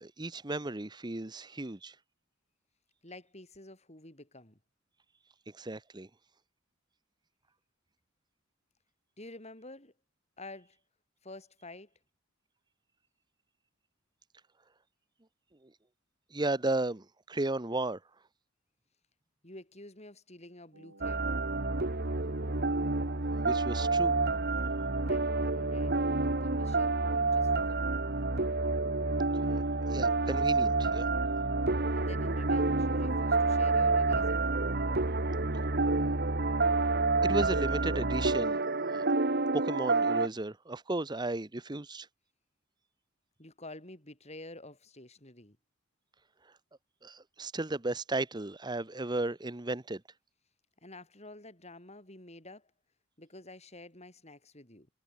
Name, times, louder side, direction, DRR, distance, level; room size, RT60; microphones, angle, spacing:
voice 1, 0.0-1.9 5.6-6.1 16.3-18.0 23.3-24.1 29.9-31.1 37.2-38.6 38.8-39.1 39.5-42.1 47.0-50.0, right 2 dB, 20° right, 0.9 m, -34 dB
voice 2, 3.0-4.6 9.2-9.9 10.4-10.8 11.2-11.9 19.4-21.4 25.0-27.9 31.9-34.5 43.4-45.6 50.8-52.7 53.2-54.9, left 2 dB, 30° left, 7.3 m, -49 dB
sound 1, 20.7-27.1, right 2 dB, 75° right, 5.1 m, -55 dB
sound 2, 21.0-40.3, right 3 dB, 50° right, 1.6 m, -28 dB
head